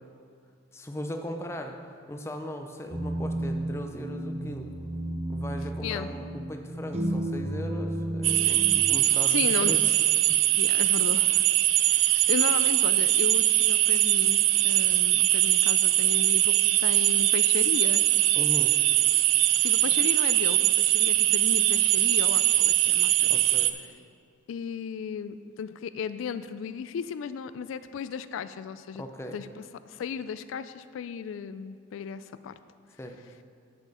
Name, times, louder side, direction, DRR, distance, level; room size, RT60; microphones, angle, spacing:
voice 1, 0.7-1.7 2.1-4.7 5.3-9.8 18.4-18.8 23.3-23.7 29.0-29.4 33.0-33.2, left 1 dB, 15° left, 4 dB, 0.5 m, -38 dB
sound 1, 2.9-8.8, right 1 dB, 35° right, 0.7 m, -32 dB
voice 2, 5.8-6.1 9.3-10.0 10.6-11.4 11.8-18.1 19.6-23.4 24.5-29.0 29.3-32.6, left 7 dB, 90° left, 13 dB, 0.3 m, -35 dB
sound 2, 8.2-23.7, right 14 dB, 85° right, 0.4 m, -22 dB
7.9 x 7.6 x 4.9 m, 2.3 s
head